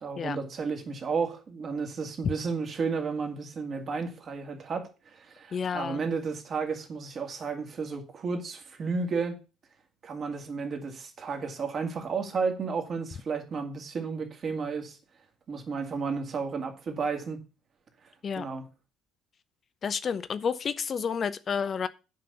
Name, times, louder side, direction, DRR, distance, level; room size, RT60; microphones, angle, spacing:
voice 1, 0.0-9.4 10.0-15.0 15.5-17.4 18.4-18.7, right 5 dB, 45° right, 2.1 m, -32 dB
voice 2, 5.5-6.0 18.2-18.4 19.8-21.9, left 6 dB, 40° left, 0.6 m, -30 dB
9.2 x 5.1 x 6.8 m
hypercardioid pair, 60°, 0 cm